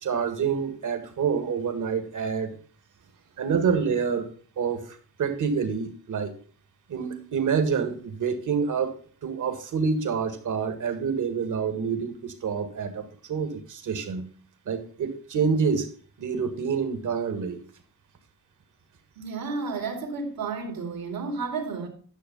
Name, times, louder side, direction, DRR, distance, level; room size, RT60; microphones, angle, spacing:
voice 1, 0.0-2.6 3.4-4.3 4.6-6.3 6.9-14.3 14.7-15.9 16.2-17.6, right 6 dB, 60° right, 1.8 m, -27 dB
voice 2, 19.2-21.9, right 4 dB, 75° right, 2.8 m, -32 dB
10.5 x 6.3 x 5.3 m
cardioid pair, 90°, 35 cm